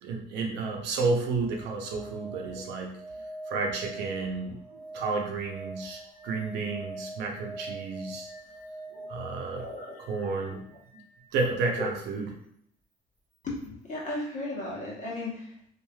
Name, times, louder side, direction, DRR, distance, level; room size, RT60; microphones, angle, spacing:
voice 1, 0.0-3.0 3.5-8.3 8.9-9.7 10.0-10.6 11.3-12.2, right 4 dB, 80° right, 2 dB, 0.6 m, -31 dB
sound 1, 1.4-11.2 13.6-13.7, right 2 dB, 15° right, 0.8 m, -44 dB
voice 2, 9.4-10.0 10.5-10.6 13.4-15.7, left 2 dB, 45° left, -4 dB, 1.1 m, -36 dB
3.1 x 2.4 x 2.3 m, 0.69 s
cardioid pair, 110°, 17 cm